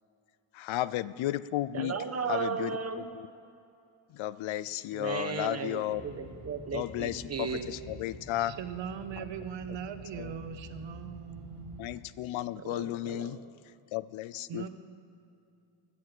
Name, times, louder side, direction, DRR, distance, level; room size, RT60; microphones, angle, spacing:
voice 1, 0.5-1.9 2.3-2.7 4.1-6.0 6.7-8.5 10.2-10.3 11.8-13.4 13.9-14.6, left 14 dB, 70° left, 18 dB, 0.6 m, -33 dB
voice 2, 1.7-3.1 4.9-7.7 12.6-13.5, right 6 dB, 30° right, 7 dB, 1.3 m, -35 dB
sound 1, 5.9-11.9, left 1 dB, 45° left, 2.1 m, -48 dB
voice 3, 8.4-11.9 14.5-14.7, right 8 dB, 60° right, 9 dB, 1.2 m, -40 dB
13.5 x 8.7 x 7.9 m, 2.6 s
cardioid pair, 110°, 50 cm